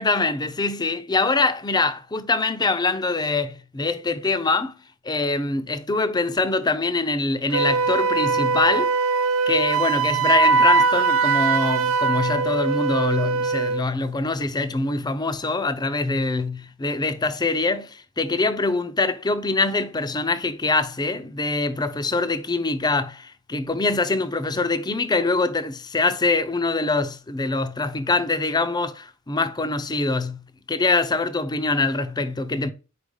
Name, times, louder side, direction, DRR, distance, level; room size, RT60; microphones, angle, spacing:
voice 1, 0.0-4.7 5.0-8.9 9.5-30.4 30.7-32.7, left 3 dB, 20° left, 0.5 m, -24 dB
Wind instrument woodwind instrument, 7.5-13.9, right 4 dB, 90° right, 0.6 m, -21 dB
4.9 x 4.4 x 5.3 m
head